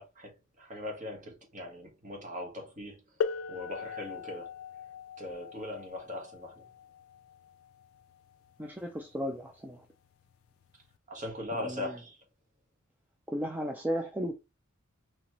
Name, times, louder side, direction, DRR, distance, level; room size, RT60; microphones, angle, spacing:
voice 1, 0.0-3.0 3.5-4.5 5.2-6.7 11.1-12.2, left 1 dB, 35° right, 1.4 m, -40 dB
sound 1, 3.2-8.6 9.7-9.8 10.6-10.8, left 6 dB, 75° left, 0.3 m, -39 dB
voice 2, 8.6-9.8 11.6-11.9 13.3-14.3, equal, 10° right, 0.4 m, -34 dB
4.3 x 3.0 x 3.0 m
head